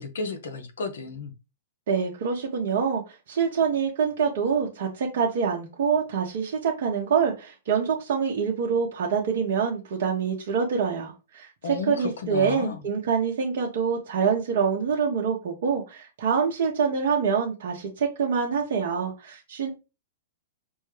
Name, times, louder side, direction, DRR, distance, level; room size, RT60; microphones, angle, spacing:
voice 1, 0.0-1.3 11.6-12.8, left 4 dB, 75° left, 0.9 m, -33 dB
voice 2, 1.9-3.0 3.3-11.5 11.9-19.7, right 6 dB, 60° right, 0.9 m, -25 dB
5.4 x 2.2 x 3.2 m
hypercardioid pair, 115°, 0 cm